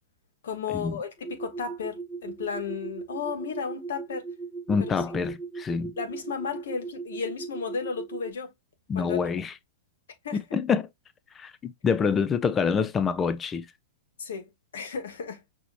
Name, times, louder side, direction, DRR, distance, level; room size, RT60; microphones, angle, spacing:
voice 1, 0.4-4.3 4.8-4.9 6.0-8.5 8.9-9.2 10.2-10.4 14.2-15.4, left 6 dB, 75° left, 1.5 m, -34 dB
sound 1, 1.2-8.3, right 4 dB, ahead, 1.2 m, -38 dB
voice 2, 4.7-5.9 8.9-9.5 10.5-10.9 11.3-13.7, left 6 dB, 20° left, 0.5 m, -26 dB
6.1 x 2.9 x 2.6 m
hypercardioid pair, 115°, 0 cm